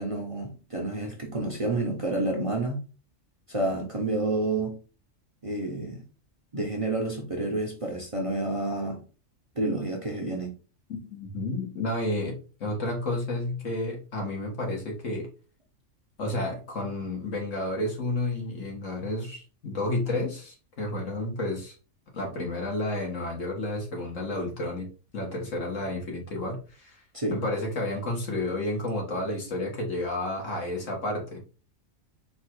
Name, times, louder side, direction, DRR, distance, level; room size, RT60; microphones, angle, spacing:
voice 1, 0.0-2.8 3.5-4.8 5.4-6.0 6.5-9.0 9.6-10.5 27.1-27.4, right 2 dB, 30° right, 0.7 m, -29 dB
voice 2, 10.9-15.3 16.2-21.8 22.1-24.9 25.1-27.0 27.3-31.4, left 1 dB, 75° left, 1.9 m, -31 dB
4.3 x 2.4 x 4.4 m
omnidirectional pair, 1.3 m